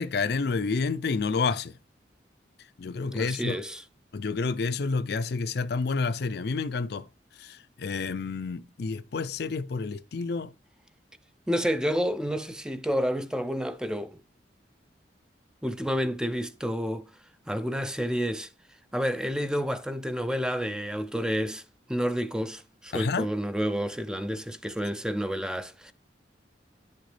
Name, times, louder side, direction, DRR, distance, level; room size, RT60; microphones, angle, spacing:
voice 1, 0.0-1.7 2.8-3.6 4.1-7.1 7.4-10.5 22.9-23.3, left 4 dB, 65° left, 0.5 m, -29 dB
voice 2, 3.0-3.8 11.5-14.2 15.6-17.1 17.5-18.5 18.9-21.6 21.9-25.9, equal, 5° right, 0.4 m, -29 dB
9.7 x 6.6 x 3.3 m
head